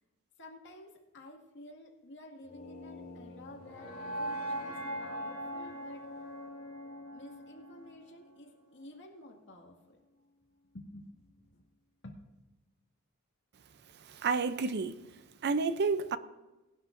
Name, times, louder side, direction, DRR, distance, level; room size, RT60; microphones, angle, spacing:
voice 1, 0.4-6.1 7.1-10.0 10.7-11.1 11.5-11.6 12.0-12.2, left 1 dB, 55° left, 2.1 m, -51 dB
sound 1, 2.4-8.5, equal, 40° left, 4.0 m, -41 dB
voice 2, 14.0-15.0 15.4-16.2, right 4 dB, 50° right, 0.5 m, -30 dB
18.5 x 11.5 x 2.6 m
head